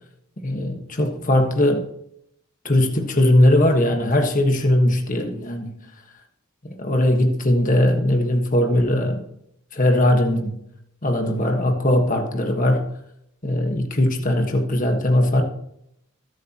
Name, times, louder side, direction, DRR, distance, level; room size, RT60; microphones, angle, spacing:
voice 1, 0.4-1.9 2.6-5.8 6.8-9.2 9.7-10.6 11.0-12.8 13.4-15.4, left 1 dB, 40° left, 3 dB, 1.4 m, -19 dB
21.5 x 8.0 x 3.0 m, 0.77 s
head